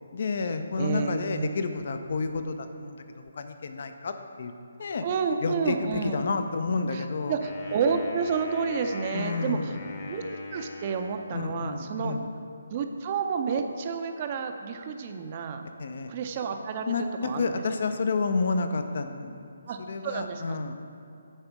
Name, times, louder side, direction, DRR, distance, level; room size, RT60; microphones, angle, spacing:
voice 1, 0.1-4.5 4.8-5.0 5.4-7.4 9.1-9.8 11.3-12.3 15.8-16.1 16.9-19.5 19.8-20.7, left 4 dB, 55° left, 8 dB, 0.5 m, -30 dB
voice 2, 0.8-1.7 5.0-6.2 6.9-9.7 10.1-10.2 10.5-12.2 12.7-15.6 16.1-17.6 19.7-19.8 20.0-20.7, right 5 dB, 35° right, 6 dB, 0.6 m, -30 dB
Wind instrument woodwind instrument, 7.4-11.8, left 2 dB, 35° left, 1.0 m, -41 dB
8.9 x 3.5 x 5.9 m, 2.5 s
figure-of-eight pair, 150°, 0 cm